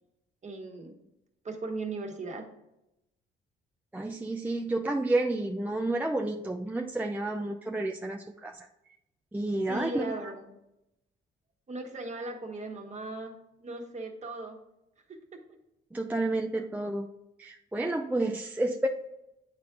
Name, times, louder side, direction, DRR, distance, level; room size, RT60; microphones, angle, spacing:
voice 1, 0.4-0.9 1.4-2.5 9.7-10.6 11.7-14.6 15.3-15.4, right 2 dB, 35° right, 3 dB, 1.6 m, -38 dB
voice 2, 3.9-8.7 9.3-10.1 15.9-17.1 17.4-18.9, right 2 dB, 10° right, 2 dB, 0.5 m, -30 dB
9.0 x 4.3 x 3.8 m, 0.88 s
cardioid pair, 90°, 20 cm